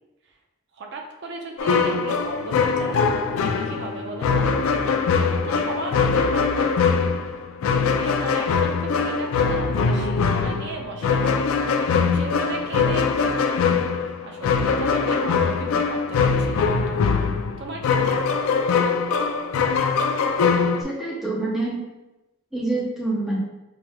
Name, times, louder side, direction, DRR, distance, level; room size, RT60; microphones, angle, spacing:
voice 1, 0.8-3.0 3.4-4.5 5.2-7.1 7.8-11.5 11.8-13.6 14.2-17.0 17.6-18.5, right 3 dB, 60° right, 2 dB, 0.5 m, -36 dB
sound 1, 1.6-20.8, left 5 dB, 85° left, 0.3 m, -22 dB
Bowed string instrument, 2.2-6.4, left 3 dB, 35° right, 0.9 m, -40 dB
voice 2, 20.8-21.8 22.5-23.4, right 2 dB, ahead, -6 dB, 0.6 m, -26 dB
4.7 x 3.0 x 2.2 m, 1.0 s
head